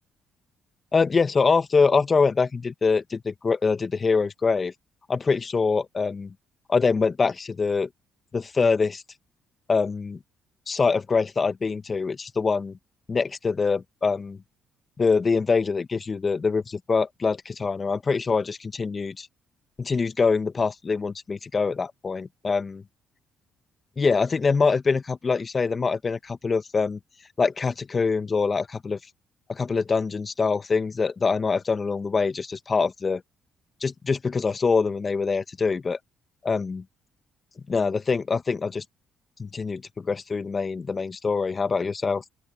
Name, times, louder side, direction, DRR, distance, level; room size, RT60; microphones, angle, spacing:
voice 1, 0.9-4.7 5.1-6.3 6.7-7.9 8.3-9.0 9.7-10.2 10.7-12.7 13.1-14.4 15.0-19.3 19.8-22.8 24.0-27.0 27.4-29.0 29.5-33.2 33.8-36.0 36.4-36.8 37.7-38.8 39.4-42.2, left 4 dB, 40° left, 1.6 m, -24 dB
open air
hypercardioid pair, 55°, 0 cm